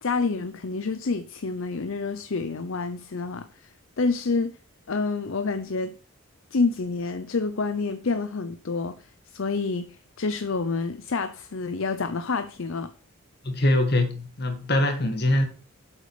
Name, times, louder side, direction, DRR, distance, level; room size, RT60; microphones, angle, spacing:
voice 1, 0.0-3.7 4.0-4.6 4.9-5.9 6.5-12.9, left 4 dB, 65° left, 0.6 m, -28 dB
voice 2, 13.4-15.4, left 1 dB, 45° left, 2.0 m, -23 dB
8.4 x 8.2 x 5.0 m
head